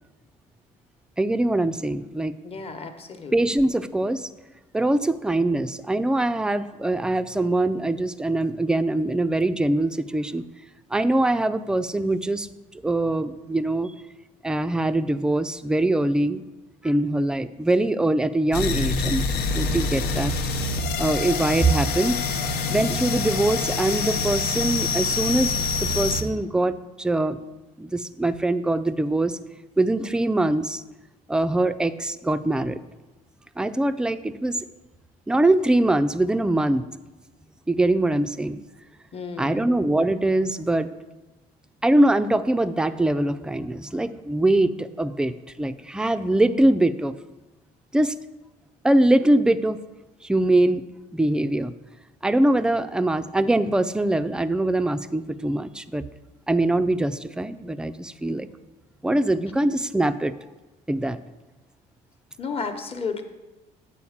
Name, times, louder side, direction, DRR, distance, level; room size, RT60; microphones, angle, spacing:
voice 1, 1.2-2.4 3.3-4.3 4.7-10.4 10.9-12.5 12.8-13.9 14.4-16.4 16.8-19.2 19.5-20.3 21.0-22.2 22.7-27.4 27.8-29.4 29.8-30.8 31.3-32.8 33.6-34.6 35.3-36.8 37.7-38.6 39.4-40.9 41.8-45.3 45.6-47.1 47.9-48.1 48.8-49.8 50.2-50.8 51.1-51.7 52.2-56.0 56.5-58.5 59.0-60.3 60.9-61.2, right 1 dB, 5° right, 11 dB, 0.3 m, -23 dB
voice 2, 2.4-3.3 39.1-39.7 62.4-63.2, left 5 dB, 35° left, 6 dB, 1.0 m, -32 dB
sound 1, 18.5-26.2, left 4 dB, 80° left, 0.9 m, -26 dB
8.4 x 4.3 x 7.2 m, 1.1 s
cardioid pair, 110°, 17 cm